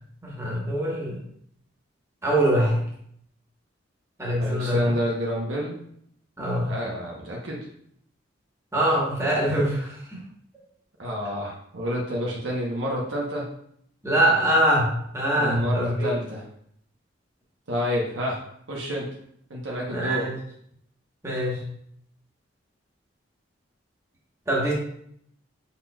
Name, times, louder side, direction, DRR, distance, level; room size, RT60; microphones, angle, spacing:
voice 1, 0.2-1.2 2.2-2.8 4.2-4.8 6.4-6.7 8.7-10.2 14.0-16.1 19.9-20.3 21.2-21.6 24.5-24.7, right 1 dB, 15° right, -4 dB, 1.1 m, -23 dB
voice 2, 4.4-5.8 6.7-7.6 11.0-13.5 15.3-16.4 17.7-18.4 18.7-19.1 19.5-20.3, equal, 80° right, -3 dB, 0.9 m, -29 dB
5.6 x 4.1 x 2.2 m, 0.69 s
head